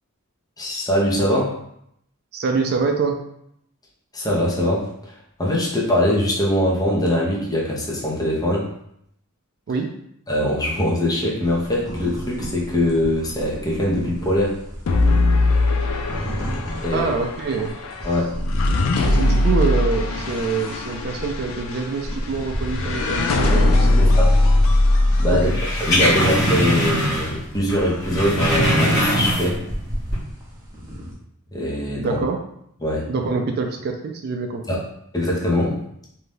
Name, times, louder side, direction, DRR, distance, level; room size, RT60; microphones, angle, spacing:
voice 1, 0.6-1.6 4.1-5.1 5.4-8.7 10.3-14.6 16.8-17.1 18.0-18.3 18.8-19.0 24.0-24.3 25.2-25.5 25.8-29.6 31.5-32.2 32.8-33.1 34.7-34.8 35.1-35.8, left 1 dB, 20° left, -3 dB, 0.6 m, -22 dB
voice 2, 2.3-3.3 9.7-9.9 16.9-17.7 19.1-24.1 25.3-25.6 32.0-32.4 33.1-34.8, right 4 dB, 50° right, 4 dB, 0.3 m, -25 dB
sound 1, 11.4-31.1, equal, 15° right, 0.7 m, -33 dB
sound 2, 14.9-26.2, left 2 dB, 70° left, 0.4 m, -20 dB
sound 3, 25.5-27.4 27.7-29.7 30.0-30.2, equal, 55° left, 1.1 m, -21 dB
2.6 x 2.2 x 3.3 m, 0.73 s
head